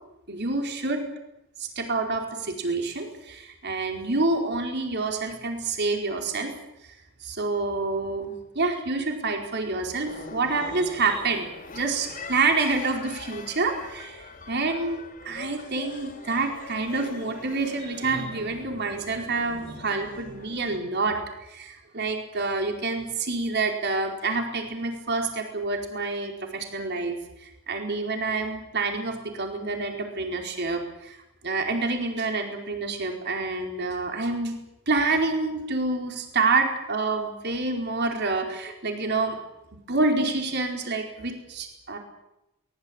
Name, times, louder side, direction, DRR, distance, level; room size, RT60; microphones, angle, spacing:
voice 1, 0.3-1.0 1.6-6.5 7.2-11.5 11.7-21.2 21.5-31.2 31.4-34.6 34.9-39.4 39.9-42.0, right 3 dB, 55° right, 3 dB, 4.6 m, -27 dB
sound 1, 10.0-20.8, left 2 dB, 40° left, 3.8 m, -42 dB
23.0 x 20.5 x 8.9 m, 0.89 s
head